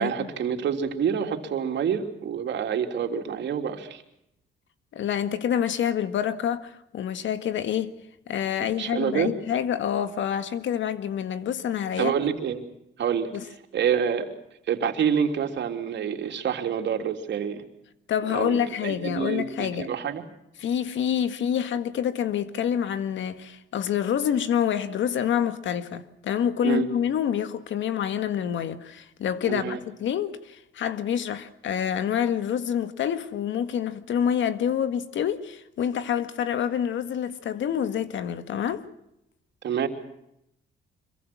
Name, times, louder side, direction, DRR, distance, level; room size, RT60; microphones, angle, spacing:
voice 1, 0.0-4.0 8.8-9.3 12.0-12.7 13.0-13.3 13.7-14.3 14.7-17.6 18.2-20.2 26.6-26.9 29.5-29.8 39.6-39.9, right 7 dB, 65° right, 3.3 m, -27 dB
voice 2, 4.9-7.9 8.3-12.1 13.3-13.4 18.1-19.9 20.6-38.8, left 9 dB, 70° left, 1.8 m, -27 dB
25.5 x 23.0 x 6.1 m
cardioid pair, 90°, 20 cm